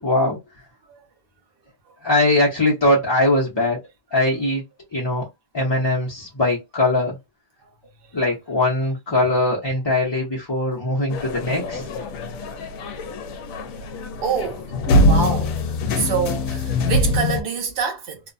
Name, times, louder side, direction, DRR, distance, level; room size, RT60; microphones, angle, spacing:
voice 1, 0.0-0.4 2.0-3.8 4.1-4.6 4.9-5.2 5.5-7.2 8.1-11.9, left 2 dB, 25° left, 0.6 m, -21 dB
sound 1, 11.1-17.4, left 1 dB, 75° left, 1.0 m, -23 dB
voice 2, 14.2-14.6 15.0-15.5 16.0-18.2, right 6 dB, 50° right, 0.8 m, -25 dB
2.8 x 2.1 x 2.5 m
omnidirectional pair, 1.5 m